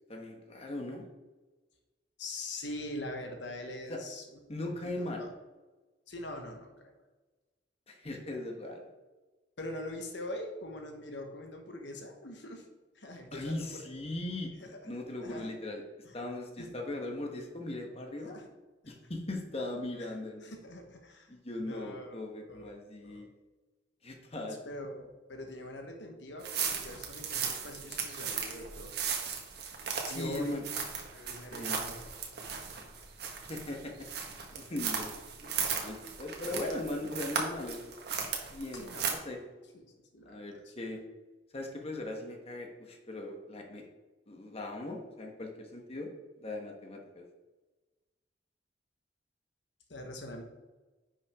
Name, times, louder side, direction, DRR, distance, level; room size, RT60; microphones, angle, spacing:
voice 1, 0.1-1.1 3.9-4.0 4.5-5.3 7.9-8.9 13.3-14.5 14.8-15.8 16.1-18.4 18.9-20.5 21.3-23.3 24.0-24.6 30.0-30.6 31.5-31.8 33.5-35.1 35.4-35.5 35.8-37.8 38.5-39.4 40.2-41.0 41.5-43.9 44.3-46.1 46.4-47.2, left 2 dB, 35° left, 2 dB, 1.2 m, -39 dB
voice 2, 2.2-5.3 6.1-6.9 9.6-12.6 12.9-13.9 14.6-14.8 15.2-15.5 16.0-16.2 16.6-16.8 18.3-18.5 20.0-20.1 20.4-21.3 21.6-22.7 23.0-23.2 24.7-29.0 30.1-30.6 31.1-32.7 38.8-39.2 39.7-40.7 49.9-50.4, left 1 dB, 75° left, 3 dB, 1.2 m, -43 dB
sound 1, 26.4-39.1, right 6 dB, 60° right, 1.4 m, -37 dB
10.0 x 5.8 x 3.6 m, 1.2 s
head